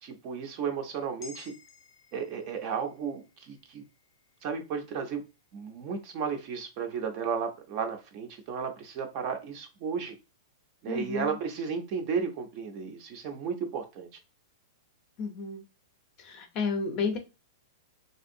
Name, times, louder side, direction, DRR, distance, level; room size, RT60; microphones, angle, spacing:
voice 1, 0.0-1.5 2.1-3.8 4.4-5.2 5.5-10.2 10.8-14.1, right 6 dB, 30° right, 0.4 m, -34 dB
sound 1, 1.2-5.7 6.1-6.2, left 4 dB, 85° left, 0.5 m, -55 dB
voice 2, 10.9-11.4 15.2-15.6 16.2-17.2, left 4 dB, 25° left, 0.5 m, -32 dB
3.2 x 2.5 x 2.6 m
supercardioid pair, 170°, 2 cm